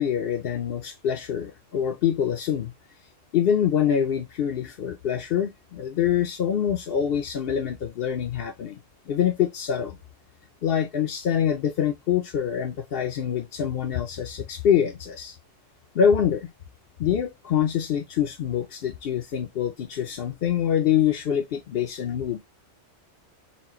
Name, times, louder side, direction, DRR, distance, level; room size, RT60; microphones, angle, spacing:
voice 1, 0.0-2.7 3.3-8.8 9.1-10.0 10.6-15.4 15.9-16.5 17.0-22.4, left 9 dB, 60° left, 0.8 m, -25 dB
4.3 x 2.2 x 4.1 m
omnidirectional pair, 1.2 m